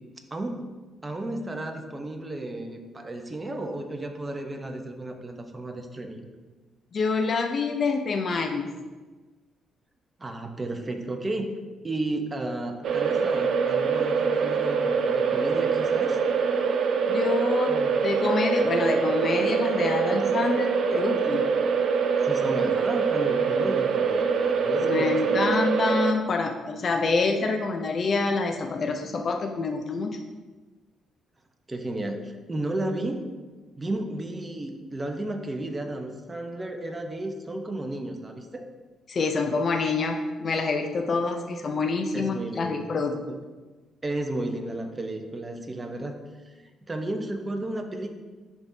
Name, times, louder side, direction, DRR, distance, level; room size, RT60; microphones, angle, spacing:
voice 1, 0.3-0.7 1.0-6.3 10.2-11.5 11.8-16.2 17.7-18.0 22.2-25.4 31.7-33.3 33.8-38.7 42.1-42.9 43.3-43.4 44.0-46.6 46.9-48.1, right 1 dB, 20° right, 4 dB, 0.8 m, -33 dB
voice 2, 6.9-8.7 17.1-17.8 18.0-21.5 24.8-30.2 39.1-43.2, left 4 dB, 45° left, 3 dB, 0.5 m, -26 dB
sound 1, 12.8-26.1, right 5 dB, 65° right, 0.5 m, -24 dB
10.5 x 3.6 x 2.7 m, 1.3 s
cardioid pair, 90°, 0 cm